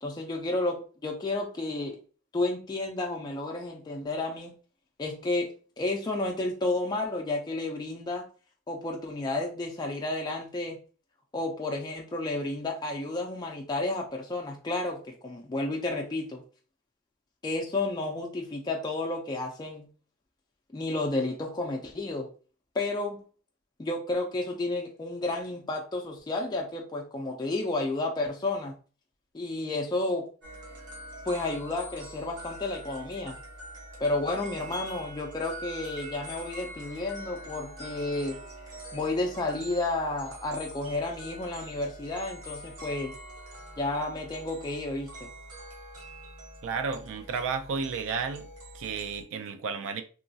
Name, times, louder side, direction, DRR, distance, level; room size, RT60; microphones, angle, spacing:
voice 1, 0.0-2.0 2.3-4.5 5.0-5.5 5.8-8.2 8.7-10.8 11.3-16.4 17.4-19.9 20.7-22.3 22.7-23.2 23.8-28.8 29.3-30.3 31.3-33.4 34.0-38.4 38.9-43.1 43.8-45.1, left 2 dB, 20° left, 0.3 m, -31 dB
sound 1, 30.4-49.2, right 1 dB, 85° right, 0.9 m, -44 dB
voice 2, 46.6-48.5 48.7-50.0, right 5 dB, 60° right, 0.3 m, -32 dB
3.0 x 2.3 x 2.6 m
head